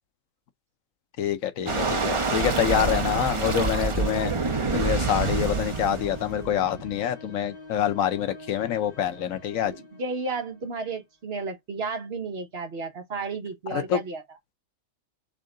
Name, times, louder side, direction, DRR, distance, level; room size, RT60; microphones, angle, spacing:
voice 1, 1.2-4.3 4.7-9.7 13.7-14.0, left 10 dB, 80° left, 1.2 m, -26 dB
sound 1, 1.7-7.0, right 4 dB, 30° right, 0.7 m, -27 dB
sound 2, 2.6-11.0, left 2 dB, 30° left, 1.5 m, -46 dB
voice 2, 9.6-14.2, right 4 dB, 50° right, 1.2 m, -33 dB
3.7 x 3.6 x 3.8 m
omnidirectional pair, 1.4 m